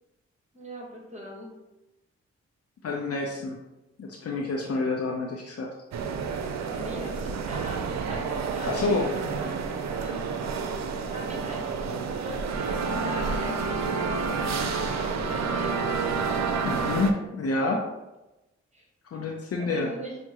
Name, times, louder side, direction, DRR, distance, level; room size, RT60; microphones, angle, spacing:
voice 1, 0.5-1.5 6.7-10.3 11.0-16.1 18.7-18.8 19.6-20.2, right 1 dB, 25° right, -2 dB, 1.3 m, -41 dB
voice 2, 2.8-3.6 4.0-5.7 8.7-9.1 16.6-17.8 19.1-19.9, left 3 dB, 55° left, -1 dB, 0.6 m, -28 dB
sound 1, 5.9-17.1, right 5 dB, 70° right, 0.5 m, -29 dB
5.9 x 2.1 x 2.9 m, 0.99 s
supercardioid pair, 45°, 29 cm